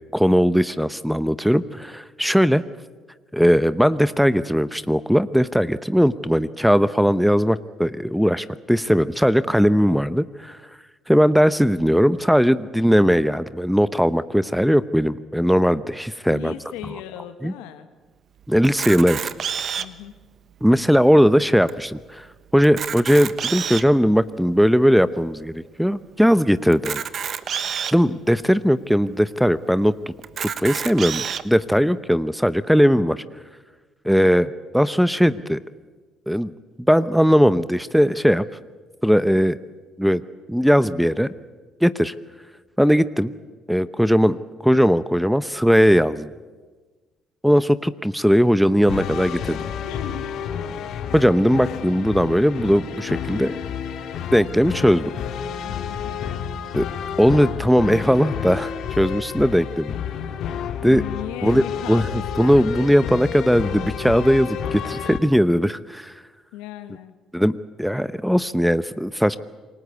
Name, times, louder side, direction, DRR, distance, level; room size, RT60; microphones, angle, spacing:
voice 1, 0.1-2.6 3.3-10.6 11.1-16.5 17.4-17.5 18.5-19.3 20.6-22.3 22.5-27.0 27.9-29.9 30.4-33.2 34.0-35.6 36.3-36.5 36.9-38.4 39.0-39.6 40.0-40.2 40.5-41.3 41.8-42.1 42.8-43.3 43.7-44.4 44.6-46.3 47.4-49.6 51.1-53.6 54.3-55.1 56.7-56.9 57.2-60.0 60.8-61.0 61.4-61.6 61.9-62.1 62.4-66.1 67.3-69.4, equal, ahead, 15 dB, 0.9 m, -19 dB
voice 2, 16.2-17.9 19.8-20.1 49.8-50.8 55.6-56.1 60.8-62.9 66.5-67.1, left 12 dB, 85° left, 9 dB, 1.5 m, -37 dB
Camera, 18.6-20.0 20.7-20.8 21.0-21.1 21.7-21.8 22.6-24.0 24.6-24.7 26.7-27.9 28.7-28.8 29.0-29.1 30.2-31.4, right 8 dB, 55° right, 1.2 m, -28 dB
Heroic Charge, 48.9-65.2, left 8 dB, 70° left, 2.2 m, -30 dB
28.0 x 20.0 x 8.3 m, 1.3 s
supercardioid pair, 60°, 0 cm